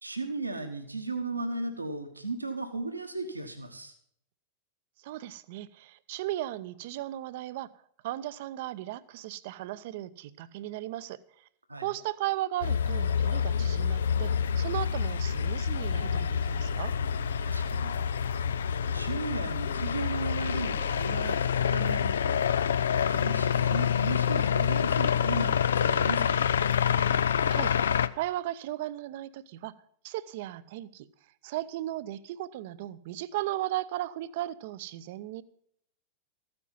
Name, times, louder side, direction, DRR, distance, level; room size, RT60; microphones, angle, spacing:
voice 1, 0.0-4.0 11.7-11.9 17.4-18.0 18.9-22.4 22.9-26.4, right 3 dB, 80° right, 6 dB, 1.4 m, -36 dB
voice 2, 5.0-7.7 8.0-11.2 11.8-16.9 27.5-27.7 28.2-29.7 30.0-31.1 31.4-35.4, right 14 dB, 50° right, 16 dB, 0.7 m, -36 dB
sound 1, 12.6-28.1, left 7 dB, 65° left, 0.5 m, -27 dB
14.0 x 9.6 x 5.6 m, 0.66 s
figure-of-eight pair, 90°, 0 cm